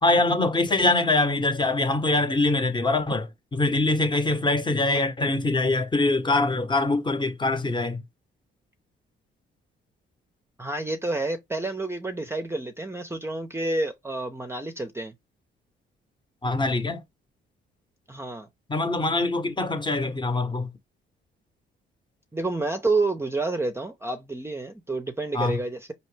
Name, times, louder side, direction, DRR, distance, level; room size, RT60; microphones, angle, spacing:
voice 1, 0.0-3.3 3.5-8.0 16.4-17.0 18.7-20.7 25.3-25.6, left 2 dB, 25° left, 0.9 m, -23 dB
voice 2, 10.6-15.1 18.1-18.5 22.3-25.9, right 2 dB, 10° right, 0.6 m, -29 dB
4.3 x 2.9 x 3.2 m
cardioid pair, 90°, 20 cm